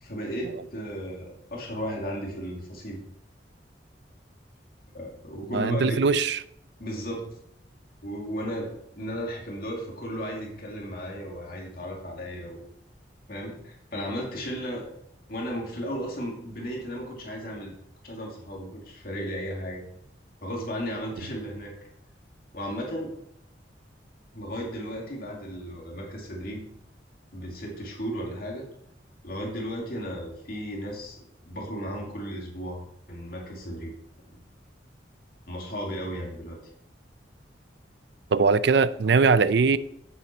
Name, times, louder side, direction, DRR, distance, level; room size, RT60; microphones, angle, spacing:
voice 1, 0.0-3.0 4.9-6.1 6.8-7.3 8.0-12.7 13.3-14.9 15.3-17.7 18.0-19.8 20.4-21.7 22.5-23.2 24.3-26.6 27.3-28.7 29.2-33.9 34.3-34.4 35.5-36.6, equal, 55° left, 2.3 m, -35 dB
voice 2, 5.5-6.4 38.3-39.8, right 4 dB, 70° right, 0.4 m, -21 dB
9.9 x 7.9 x 4.4 m
head